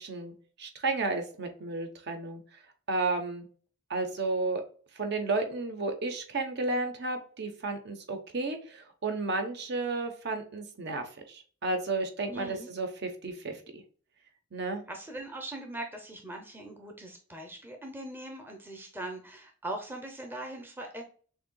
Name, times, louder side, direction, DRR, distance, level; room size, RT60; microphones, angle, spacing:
voice 1, 0.0-2.4 2.9-3.5 3.9-4.6 4.9-13.6 14.5-14.8, right 3 dB, 55° right, 6 dB, 0.9 m, -32 dB
voice 2, 12.3-12.7 14.9-21.0, right 1 dB, 10° right, 3 dB, 0.6 m, -41 dB
6.5 x 2.7 x 2.2 m, 0.42 s
head